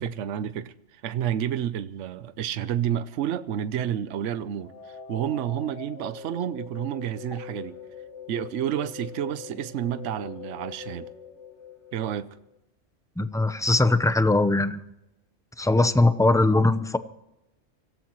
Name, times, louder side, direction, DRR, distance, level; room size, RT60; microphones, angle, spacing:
voice 1, 0.0-7.8 8.3-11.1 11.9-12.3, right 10 dB, 75° right, 1.0 m, -30 dB
sound 1, 4.6-12.6, left 7 dB, 65° left, 1.9 m, -43 dB
voice 2, 13.2-14.8 15.6-17.0, left 2 dB, 5° left, 0.4 m, -21 dB
25.5 x 17.5 x 3.1 m
omnidirectional pair, 1.3 m